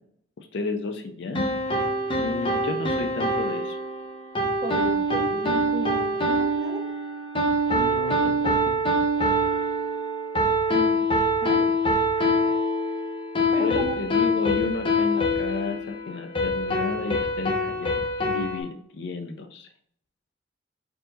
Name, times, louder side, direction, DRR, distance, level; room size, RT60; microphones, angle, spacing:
voice 1, 0.5-1.5 2.2-3.8 7.7-8.8 13.6-17.9 18.3-18.7 18.9-19.7, left 3 dB, 70° left, 7 dB, 0.4 m, -32 dB
sound 1, 1.3-18.6, equal, 25° left, 0.7 m, -25 dB
voice 2, 4.6-6.8 10.7-11.0 11.4-11.7 13.5-14.1, equal, 20° right, 1 dB, 0.7 m, -34 dB
4.5 x 2.7 x 3.9 m, 0.63 s
head